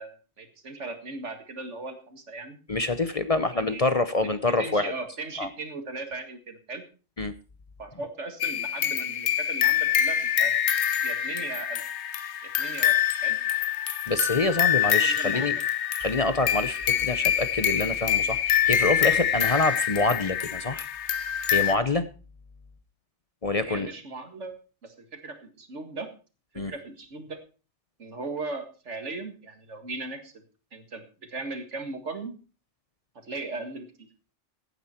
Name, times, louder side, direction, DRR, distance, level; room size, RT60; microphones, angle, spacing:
voice 1, 0.0-2.6 3.5-3.9 4.4-6.8 7.8-10.5 11.0-11.8 12.4-13.4 14.8-15.5 23.6-24.6 24.8-26.1 26.5-27.4 28.0-30.4 30.7-32.3 33.2-34.1, right 3 dB, 75° right, 7 dB, 2.2 m, -38 dB
voice 2, 2.7-4.9 5.4-5.5 7.2-7.3 14.1-15.6 16.0-20.9 21.5-22.1 23.4-23.9 26.6-26.7, left 2 dB, 35° left, 11 dB, 0.7 m, -26 dB
sound 1, 8.4-21.7, left 9 dB, 70° left, 1.1 m, -25 dB
15.0 x 9.4 x 4.4 m, 0.35 s
omnidirectional pair, 1.2 m